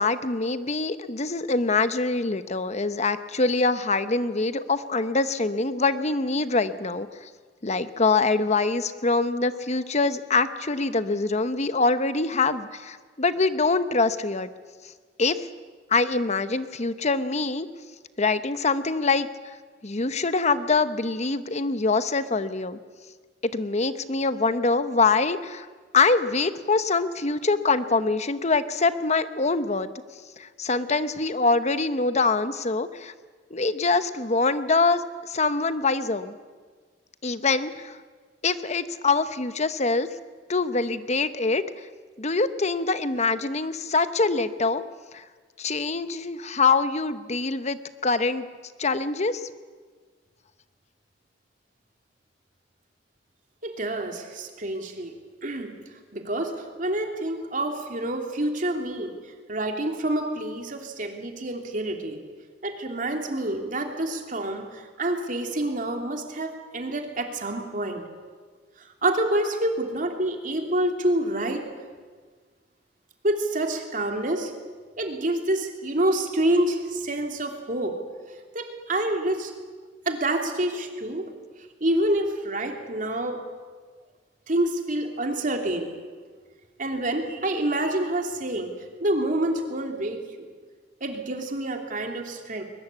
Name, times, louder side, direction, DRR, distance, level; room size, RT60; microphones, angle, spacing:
voice 1, 0.0-7.3 7.6-14.5 15.2-15.5 15.9-17.7 18.2-19.5 19.8-22.8 23.5-25.7 25.9-29.9 30.4-33.1 33.5-36.4 37.2-38.0 38.4-40.1 40.5-41.6 42.2-44.8 45.1-45.2 45.6-48.5 48.8-49.5, left 3 dB, 40° left, 12 dB, 1.0 m, -24 dB
voice 2, 53.6-55.1 55.4-55.7 56.1-59.1 59.5-62.2 62.6-68.0 69.0-71.7 73.2-74.5 75.0-78.0 78.5-79.5 80.1-81.3 81.8-83.4 84.5-85.9 86.8-88.7 89.0-90.5 91.0-92.6, right 1 dB, 45° right, 3 dB, 3.0 m, -27 dB
22.0 x 20.0 x 8.4 m, 1.5 s
head